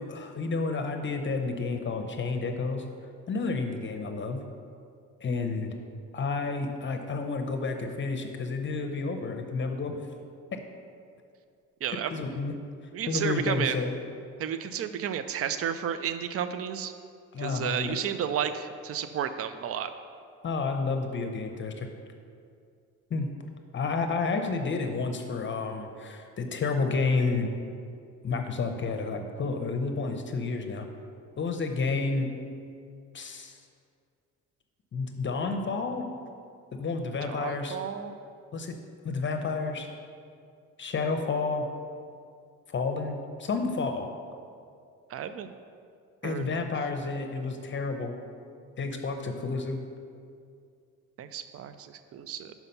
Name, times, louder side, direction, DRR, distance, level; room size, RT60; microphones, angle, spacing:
voice 1, 0.0-2.8 3.3-4.4 5.2-5.7 6.1-10.0 10.5-10.6 11.9-12.6 13.1-13.9 17.3-18.0 20.4-21.9 23.1-23.3 23.7-27.5 28.2-30.9 31.4-32.3 33.1-33.6 34.9-36.0 36.7-37.8 38.5-38.7 39.0-39.9 40.8-41.7 42.7-44.1 46.2-48.1 48.8-49.8, left 4 dB, 40° left, 5 dB, 0.7 m, -30 dB
voice 2, 11.8-12.1 12.9-13.8 14.4-16.9 17.4-19.9 37.2-38.1 45.1-45.5 46.2-46.7 51.2-52.5, right 9 dB, 50° right, 11 dB, 0.5 m, -32 dB
5.9 x 5.6 x 5.4 m, 2.3 s
cardioid pair, 90°, 30 cm